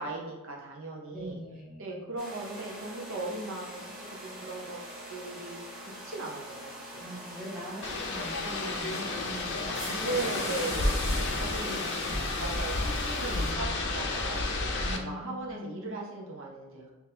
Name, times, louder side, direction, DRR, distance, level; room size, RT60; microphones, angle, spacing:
voice 1, 0.0-1.4 1.8-4.8 5.1-5.6 6.0-7.0 10.0-11.0 11.4-11.8 12.4-13.7 13.9-16.9, right 2 dB, 65° right, -1 dB, 0.8 m, -38 dB
voice 2, 1.1-2.0 7.0-10.7 11.5-12.3 13.2-13.7 14.8-15.9, equal, ahead, -7 dB, 1.1 m, -42 dB
sound 1, 2.2-13.5, right 1 dB, 45° right, 1.4 m, -43 dB
sound 2, 7.8-15.0, left 2 dB, 55° left, 0.5 m, -31 dB
3.7 x 2.8 x 2.8 m, 1.2 s
head